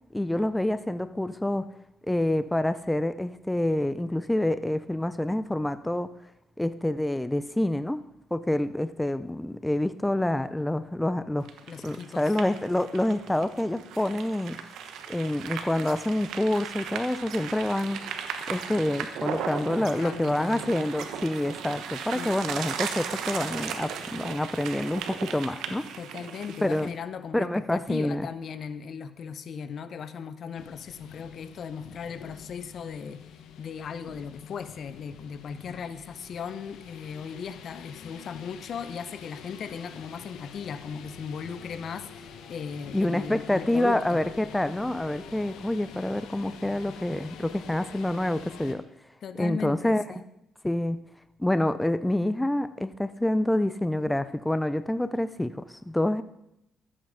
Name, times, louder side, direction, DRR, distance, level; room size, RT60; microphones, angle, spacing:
voice 1, 0.1-1.7 2.1-6.1 6.6-8.0 8.3-11.5 11.8-14.6 15.1-18.0 18.5-25.9 26.6-26.9 27.3-28.3 42.9-48.8 49.4-50.2 50.6-51.0 51.4-56.2, left 1 dB, 10° left, 13 dB, 0.5 m, -27 dB
sound 1, 11.5-26.9, right 7 dB, 85° right, 1.1 m, -37 dB
voice 2, 11.7-12.3 19.7-20.7 22.1-22.3 26.0-33.2 33.6-44.2 49.2-50.2, left 6 dB, 60° left, 13 dB, 0.8 m, -37 dB
sound 2, 30.5-48.7, left 7 dB, 85° left, 1.2 m, -46 dB
13.0 x 8.7 x 5.1 m, 0.82 s
cardioid pair, 90°, 0 cm